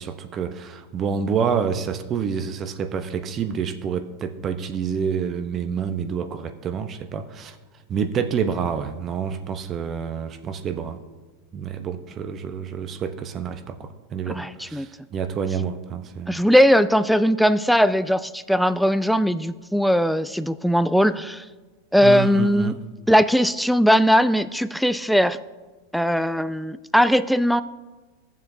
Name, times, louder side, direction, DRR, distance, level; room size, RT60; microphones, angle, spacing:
voice 1, 0.0-7.6 7.9-11.0 11.5-16.4 22.0-22.7, right 7 dB, 35° right, 9 dB, 0.7 m, -28 dB
voice 2, 14.3-14.9 16.3-21.4 21.9-22.7 23.1-25.4 25.9-27.6, equal, ahead, 14 dB, 0.3 m, -19 dB
15.0 x 7.1 x 2.7 m, 1.3 s
hypercardioid pair, 115°, 0 cm